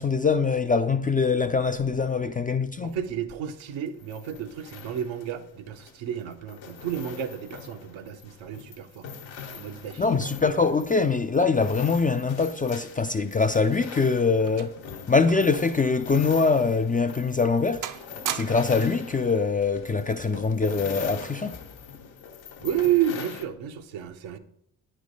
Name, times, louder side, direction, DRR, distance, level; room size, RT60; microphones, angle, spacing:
voice 1, 0.0-3.0 10.0-14.8 15.1-17.9 18.3-21.6, left 4 dB, 20° left, 0.3 m, -23 dB
voice 2, 2.8-9.1 9.5-10.3 22.6-24.4, right 10 dB, 70° right, 0.8 m, -31 dB
sound 1, 3.5-23.5, left 6 dB, 75° left, 1.1 m, -43 dB
sound 2, 14.1-15.6 15.9-16.1 16.7-16.9 17.3-17.6 17.8-18.9 19.9-20.2, right 9 dB, 45° right, 0.6 m, -37 dB
9.4 x 3.3 x 5.2 m
hypercardioid pair, 45°, 48 cm